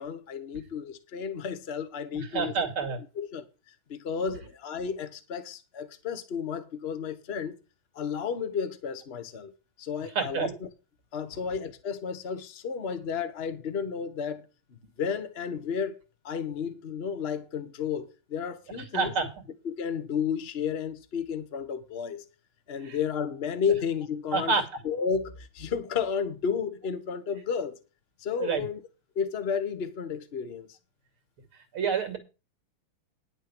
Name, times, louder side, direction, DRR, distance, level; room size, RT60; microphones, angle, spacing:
voice 1, 0.0-2.5 3.2-3.4 3.9-7.5 7.9-9.5 9.8-10.7 11.1-14.4 15.0-16.0 16.2-19.2 19.6-22.2 22.7-24.5 24.8-27.8 28.2-28.8 29.1-30.7, left 6 dB, 35° left, 1.2 m, -32 dB
voice 2, 2.1-3.0 10.1-10.5 18.9-19.4 22.8-23.0 24.3-24.6 28.4-28.6 31.7-32.2, right 5 dB, 80° right, 3.2 m, -28 dB
10.5 x 6.9 x 6.1 m
omnidirectional pair, 2.3 m